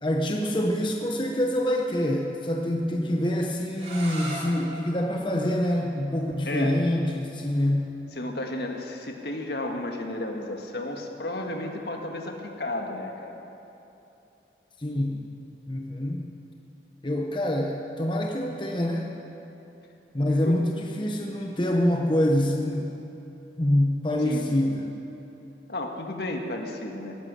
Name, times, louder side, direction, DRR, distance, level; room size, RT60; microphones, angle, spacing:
voice 1, 0.0-7.9 14.8-15.3 15.7-16.3 17.0-19.1 20.1-23.0 23.6-24.9, left 1 dB, 25° left, 1 dB, 0.9 m, -26 dB
sound 1, 3.7-9.5, right 1 dB, 35° right, 3.5 m, -43 dB
voice 2, 6.4-6.8 8.1-13.4 20.4-20.6 24.2-24.4 25.7-27.2, left 1 dB, 65° left, 2 dB, 1.7 m, -33 dB
17.5 x 10.5 x 7.6 m, 2.9 s
head